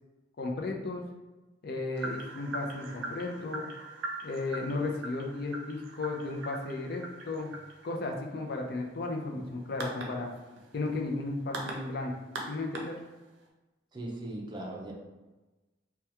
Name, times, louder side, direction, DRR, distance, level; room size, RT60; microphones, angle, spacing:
voice 1, 0.4-1.0 1.6-3.7 4.2-7.5 7.8-10.3 10.7-12.1 12.5-12.9, left 2 dB, 55° left, 1 dB, 0.5 m, -34 dB
sound 1, 2.0-13.4, right 2 dB, 85° right, 0.5 m, -42 dB
voice 2, 13.9-14.9, right 1 dB, 25° right, -1 dB, 0.5 m, -38 dB
3.3 x 2.3 x 2.9 m, 1.1 s
head